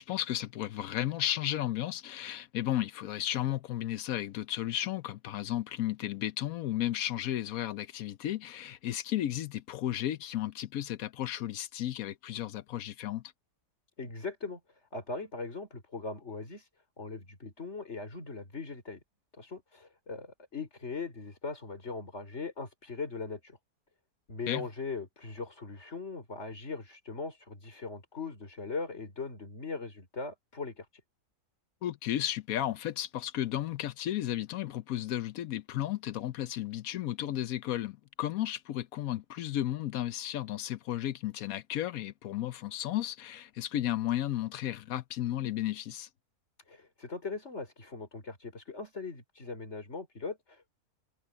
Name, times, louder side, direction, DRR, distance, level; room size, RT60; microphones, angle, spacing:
voice 1, 0.0-13.2 24.5-24.7 31.8-46.1, left 12 dB, 70° left, 1.0 m, -34 dB
voice 2, 14.0-16.7 17.0-19.0 19.4-23.6 24.3-30.9 46.7-50.7, left 4 dB, 45° left, 4.4 m, -40 dB
omnidirectional pair, 1.7 m